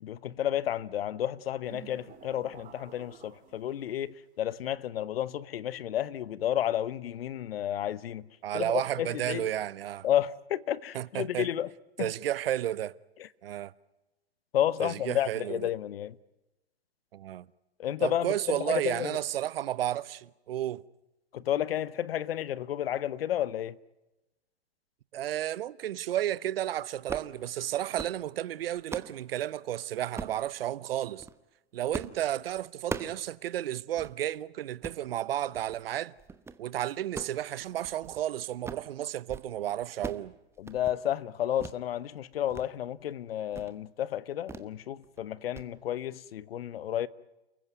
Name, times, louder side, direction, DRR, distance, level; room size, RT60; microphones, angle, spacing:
voice 1, 0.0-8.3 8.5-9.5 10.0-11.7 12.0-12.1 14.5-16.1 17.8-19.2 21.3-23.8 40.6-47.1, left 11 dB, 65° left, 1.0 m, -31 dB
sound 1, 1.7-4.0, right 10 dB, 25° right, 3.5 m, -51 dB
voice 2, 8.4-10.1 10.9-11.5 12.0-12.9 13.4-13.7 14.8-15.7 17.1-17.5 18.0-20.8 25.1-31.3 31.7-36.1 36.6-40.3, right 12 dB, 65° right, 0.9 m, -32 dB
sound 2, 27.1-27.3 27.8-28.2 28.6-29.2 30.2-30.4 31.0-31.4 31.9-32.2 32.5-33.2 33.6-33.7 34.0-34.1 34.7-35.0 35.5-35.8 36.2-36.6 37.0-38.2 38.5-38.9 39.2-39.5 39.7-40.3 40.6-41.0 41.6-41.8 42.2-42.7 43.0-43.1 43.5-43.8 44.5-44.7 45.0-45.2 45.5-45.7, right 4 dB, 10° right, 1.0 m, -40 dB
29.0 x 15.0 x 9.3 m
hypercardioid pair, 125°, 32 cm